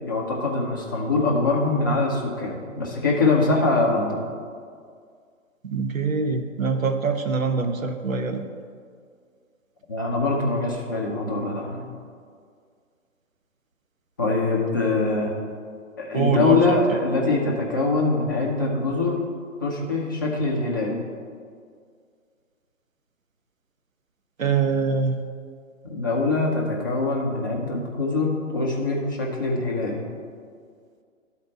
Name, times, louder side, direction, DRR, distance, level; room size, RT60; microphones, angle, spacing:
voice 1, 0.0-4.2 9.9-11.9 14.2-15.3 16.0-19.2 19.6-21.0 25.8-30.1, left 3 dB, 15° left, -2 dB, 0.5 m, -23 dB
voice 2, 5.6-8.4 16.1-16.8 24.4-25.2, right 5 dB, 80° right, 7 dB, 0.9 m, -24 dB
11.5 x 4.3 x 4.1 m, 2.1 s
figure-of-eight pair, 135°, 40 cm